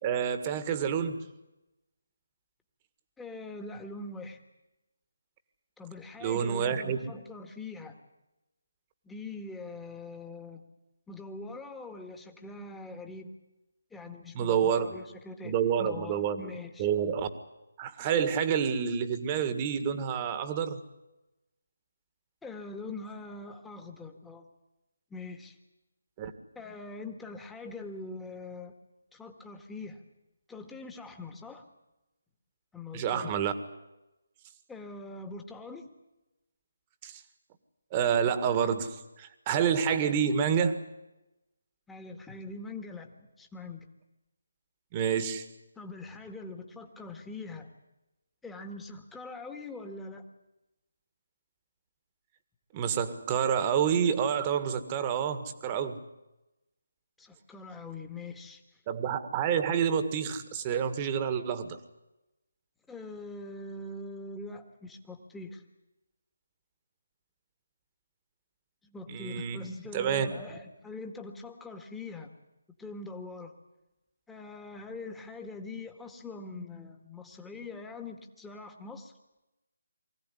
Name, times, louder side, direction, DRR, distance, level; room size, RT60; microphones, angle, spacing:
voice 1, 0.0-1.3 6.2-7.1 14.4-14.9 15.4-16.4 16.8-17.3 17.8-20.8 26.2-26.3 32.9-33.5 37.0-37.2 37.9-40.8 44.9-45.4 52.7-56.0 58.9-61.8 69.1-69.6 69.9-70.3, right 8 dB, 25° right, 10 dB, 1.8 m, -28 dB
voice 2, 3.2-4.4 5.8-8.0 9.0-10.6 11.1-13.3 13.9-15.5 15.8-16.9 22.4-24.4 25.1-25.6 26.6-28.7 29.1-30.0 30.5-31.6 32.7-33.4 34.7-35.9 40.0-40.6 41.9-43.9 45.8-47.7 48.4-50.3 57.2-58.8 62.9-65.6 68.8-72.3 72.8-73.5 74.3-79.1, left 3 dB, 5° left, 4 dB, 1.8 m, -43 dB
24.0 x 16.0 x 9.9 m, 0.97 s
figure-of-eight pair, 155°, 0 cm